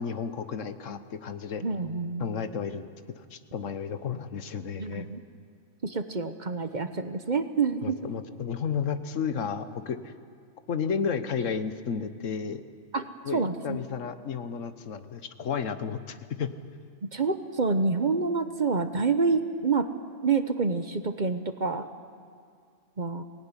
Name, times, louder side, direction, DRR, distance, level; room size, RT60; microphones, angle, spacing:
voice 1, 0.0-1.6 2.2-2.9 3.2-5.1 7.8-10.1 10.7-12.6 13.2-16.5, left 6 dB, 80° left, 11 dB, 1.4 m, -32 dB
voice 2, 1.6-2.3 4.8-5.2 5.8-8.0 12.9-13.1 13.3-13.8 17.1-19.9 20.2-21.9 23.0-23.2, right 4 dB, 40° right, 9 dB, 1.0 m, -27 dB
22.5 x 18.0 x 9.8 m, 2.2 s
omnidirectional pair, 1.3 m